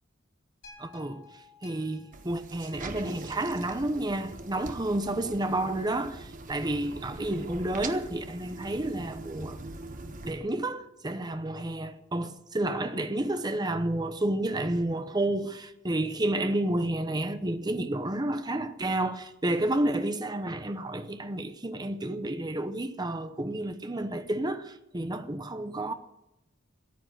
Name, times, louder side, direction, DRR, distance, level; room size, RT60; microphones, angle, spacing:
sound 1, 0.6-5.0 5.6-5.7, left 4 dB, 75° left, 5.4 m, -56 dB
voice 1, 0.8-9.6 10.2-25.9, right 1 dB, 20° right, 0.8 m, -30 dB
sound 2, 2.1-10.3, right 2 dB, 45° right, 1.2 m, -42 dB
14.0 x 8.9 x 9.0 m
head